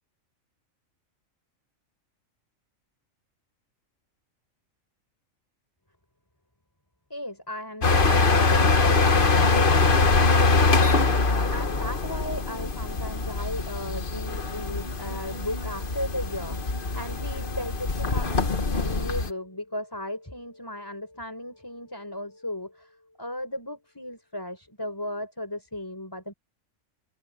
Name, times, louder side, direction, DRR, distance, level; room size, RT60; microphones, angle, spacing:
voice 1, 7.1-9.4 11.3-26.3, left 1 dB, 15° left, 4.5 m, -36 dB
sound 1, 7.8-19.3, left 3 dB, 40° left, 1.5 m, -23 dB
omnidirectional pair, 1.4 m